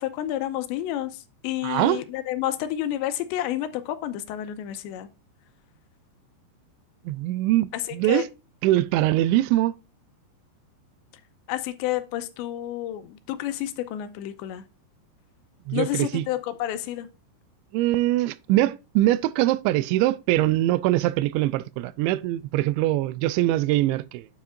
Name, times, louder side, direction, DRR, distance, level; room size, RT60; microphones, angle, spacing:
voice 1, 0.0-5.1 7.7-8.2 11.5-14.6 15.7-17.1, left 13 dB, 85° left, 3.0 m, -30 dB
voice 2, 1.6-2.0 7.1-8.3 8.6-9.7 15.7-16.3 17.7-24.3, right 15 dB, 85° right, 2.9 m, -23 dB
9.0 x 7.2 x 2.5 m
omnidirectional pair, 5.2 m